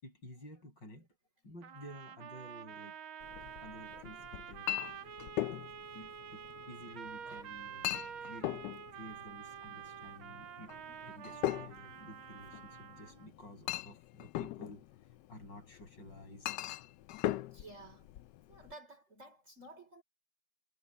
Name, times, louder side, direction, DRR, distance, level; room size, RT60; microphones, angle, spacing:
voice 1, 0.0-1.1 1.4-3.0 3.4-5.1 5.9-10.8 11.1-14.8 15.3-16.6, equal, 55° left, 8.8 m, -52 dB
sound 1, 1.6-13.3, right 8 dB, 75° right, 2.1 m, -48 dB
Chink clink, 3.2-18.7, left 14 dB, 75° left, 1.0 m, -41 dB
voice 2, 17.5-18.1 18.5-20.0, right 2 dB, 35° right, 5.5 m, -54 dB
omnidirectional pair, 2.3 m